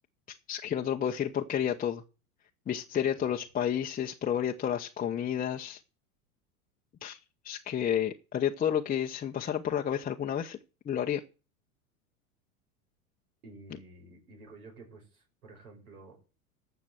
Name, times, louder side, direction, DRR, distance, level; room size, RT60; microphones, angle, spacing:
voice 1, 0.3-2.0 2.7-5.8 7.0-7.2 7.4-10.6 10.9-11.2, left 9 dB, 20° left, 1 dB, 0.8 m, -31 dB
voice 2, 13.4-16.2, right 2 dB, 80° right, 2 dB, 6.0 m, -51 dB
15.0 x 5.9 x 7.9 m, 0.34 s
hypercardioid pair, 100°, 43 cm